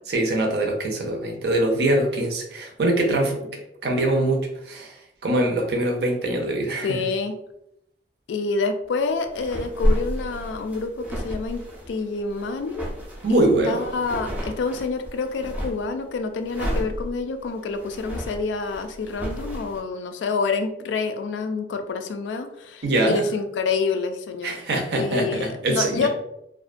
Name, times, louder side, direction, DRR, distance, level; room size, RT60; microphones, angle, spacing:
voice 1, 0.1-3.5 3.8-5.0 5.2-7.1 13.2-13.8 22.8-23.2 24.4-26.1, right 1 dB, 65° right, 2 dB, 0.5 m, -23 dB
voice 2, 6.8-7.4 8.3-12.9 13.3-24.5 24.9-26.1, left 4 dB, 85° left, 7 dB, 0.3 m, -27 dB
sound 1, 9.3-15.9 16.4-19.8, equal, 10° right, 0.4 m, -30 dB
2.4 x 2.1 x 2.4 m, 0.79 s
head